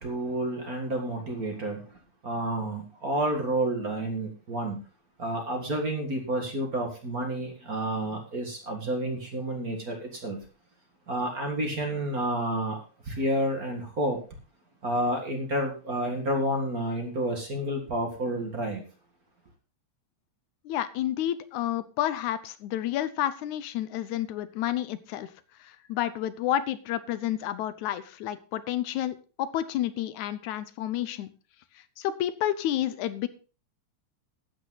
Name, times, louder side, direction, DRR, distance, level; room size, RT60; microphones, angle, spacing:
voice 1, 0.0-4.8 5.2-10.4 11.1-14.2 14.8-18.8, right 1 dB, 35° right, 3 dB, 1.9 m, -30 dB
voice 2, 20.7-25.3 25.6-31.3 32.0-33.3, left 12 dB, 80° left, 14 dB, 2.2 m, -30 dB
12.5 x 8.8 x 4.0 m, 0.35 s
omnidirectional pair, 3.4 m